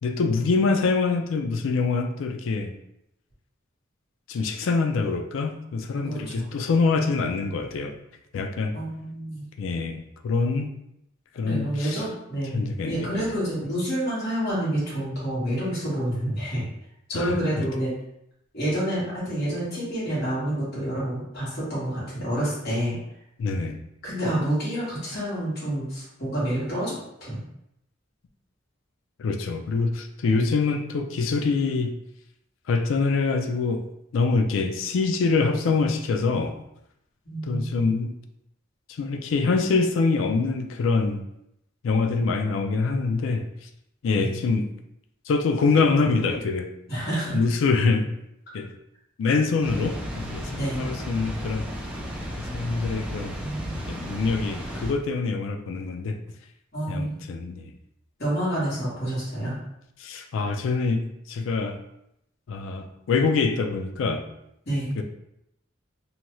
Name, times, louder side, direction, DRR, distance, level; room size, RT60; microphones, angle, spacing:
voice 1, 0.0-2.7 4.3-8.0 8.3-8.8 9.6-10.7 11.4-12.0 12.5-13.3 17.1-17.3 23.4-23.8 29.2-32.0 32.7-33.8 34.1-36.6 37.5-38.1 38.9-41.2 41.8-43.5 44.0-44.7 45.3-46.7 47.3-48.1 48.5-48.7 49.2-51.7 52.4-53.4 53.9-56.2 56.9-57.7 60.0-61.8 62.5-64.2 65.0-65.1, left 4 dB, 70° left, 6 dB, 0.3 m, -25 dB
voice 2, 6.0-6.5 8.7-9.5 11.4-16.7 17.1-17.9 18.5-23.0 24.0-27.4 30.3-30.5 37.2-37.9 44.2-44.4 46.9-47.4 50.5-50.8 53.4-53.8 56.7-57.2 58.2-59.5 64.7-65.0, right 1 dB, 50° left, -9 dB, 1.3 m, -28 dB
Water, 49.6-54.9, equal, 5° right, 0.4 m, -34 dB
2.8 x 2.2 x 3.0 m, 0.80 s
head